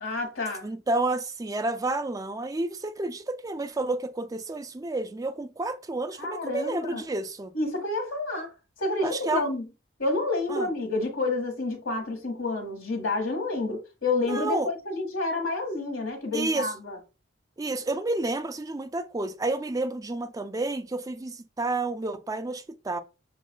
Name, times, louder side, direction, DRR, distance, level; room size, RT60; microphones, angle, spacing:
voice 1, 0.0-0.6 6.2-7.0 7.5-8.5 8.8-9.6 10.0-17.0, left 2 dB, 75° left, 1.6 m, -29 dB
voice 2, 0.6-7.5 9.0-9.5 10.5-10.7 14.2-14.7 16.3-16.7 17.6-23.0, right 2 dB, 15° right, 0.3 m, -30 dB
7.2 x 2.4 x 2.2 m
head